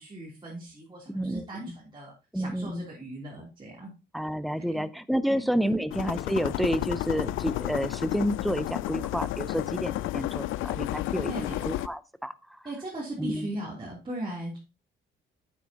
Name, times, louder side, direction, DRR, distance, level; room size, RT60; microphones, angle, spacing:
voice 1, 0.0-3.9 4.6-4.9 5.3-5.8 11.3-11.6 12.6-14.6, right 1 dB, 25° right, -6 dB, 3.2 m, -38 dB
voice 2, 1.1-1.8 2.3-2.9 4.1-12.3 13.2-13.5, equal, ahead, 14 dB, 0.6 m, -30 dB
sound 1, 5.9-11.9, left 15 dB, 90° left, 0.4 m, -32 dB
9.0 x 8.2 x 2.9 m, 0.30 s
cardioid pair, 90°, 20 cm